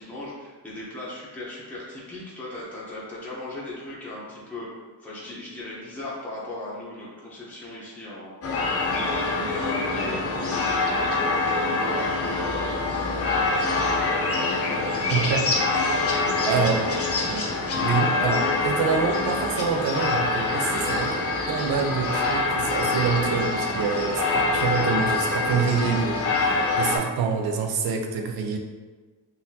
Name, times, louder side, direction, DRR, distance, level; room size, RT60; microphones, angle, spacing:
voice 1, 0.0-8.3 8.6-15.4, left 1 dB, 5° left, -8 dB, 0.7 m, -37 dB
sound 1, 8.4-27.0, left 3 dB, 40° left, 0.5 m, -25 dB
voice 2, 15.1-15.7 16.4-16.9 17.3-17.5 17.7-28.6, right 5 dB, 70° right, 3 dB, 0.6 m, -26 dB
3.8 x 2.6 x 2.7 m, 1.3 s
wide cardioid pair, 150°, 38 cm